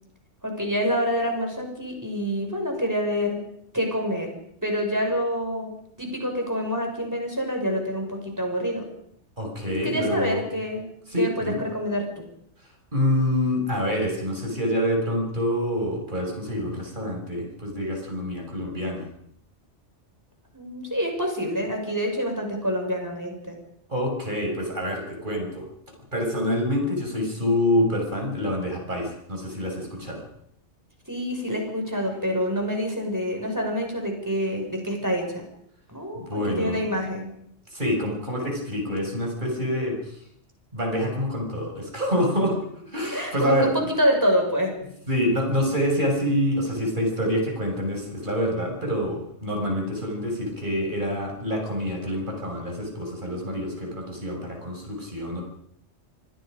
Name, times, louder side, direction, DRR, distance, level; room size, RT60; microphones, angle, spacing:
voice 1, 0.4-3.4 3.7-4.3 4.6-8.8 9.7-10.9 11.2-12.2 20.5-23.6 31.1-35.4 35.9-37.3 43.1-44.7, equal, 15° right, 2 dB, 6.2 m, -27 dB
voice 2, 9.4-10.4 11.1-11.6 12.9-19.1 23.9-25.7 26.1-30.2 36.3-36.8 37.7-40.1 40.7-42.6 42.9-43.7 45.1-55.4, equal, 40° right, 1 dB, 6.8 m, -26 dB
28.5 x 20.0 x 5.3 m, 0.71 s
omnidirectional pair, 1.2 m